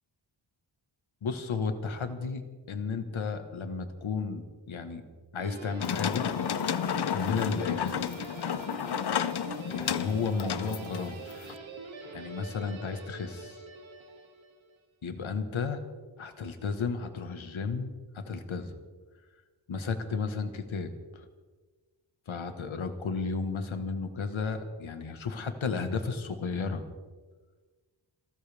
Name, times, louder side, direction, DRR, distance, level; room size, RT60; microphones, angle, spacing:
voice 1, 1.2-2.4 2.7-5.0 5.3-6.3 7.1-8.2 9.7-11.5 12.1-13.6 15.0-15.8 16.2-18.8 19.7-21.3 22.3-26.8, left 5 dB, 80° left, 8 dB, 1.7 m, -33 dB
Guitar, 5.4-14.7, right 3 dB, 75° right, 2.8 m, -44 dB
sound 1, 5.8-11.5, left 9 dB, 60° left, 0.7 m, -31 dB
28.5 x 13.5 x 3.6 m, 1.3 s
wide cardioid pair, 155°, 47 cm